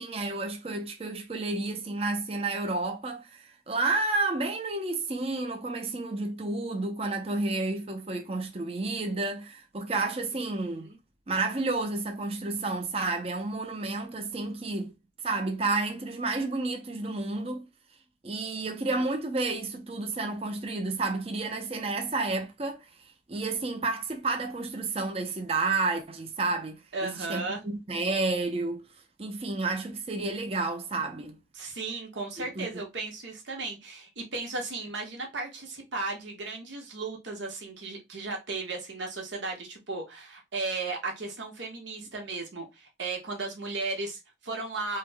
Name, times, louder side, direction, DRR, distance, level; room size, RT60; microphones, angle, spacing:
voice 1, 0.0-10.9 11.3-14.9 15.2-17.7 18.2-28.9 29.2-31.4 32.4-32.8, right 3 dB, 35° right, 0.5 m, -31 dB
voice 2, 10.6-11.0 26.9-27.6 31.5-45.0, right 3 dB, 85° right, 1.2 m, -35 dB
3.3 x 2.1 x 3.4 m
head